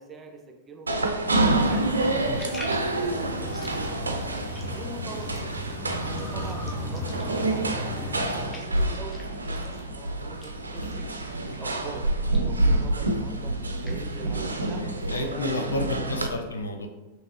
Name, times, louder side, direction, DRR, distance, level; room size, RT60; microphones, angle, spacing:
voice 1, 0.0-5.5 6.0-11.1 11.5-15.9, right 3 dB, 20° right, 4 dB, 0.6 m, -43 dB
sound 1, 0.9-16.3, right 2 dB, 80° right, 0.4 m, -28 dB
sound 2, 1.4-8.5, left 1 dB, 40° left, 1.1 m, -36 dB
sound 3, 1.4-11.7 12.0-16.0, left 1 dB, 20° left, 0.7 m, -49 dB
voice 2, 14.8-16.9, left 2 dB, 70° left, 5 dB, 0.5 m, -31 dB
5.2 x 3.0 x 2.5 m, 1.1 s
figure-of-eight pair, 90°, 0 cm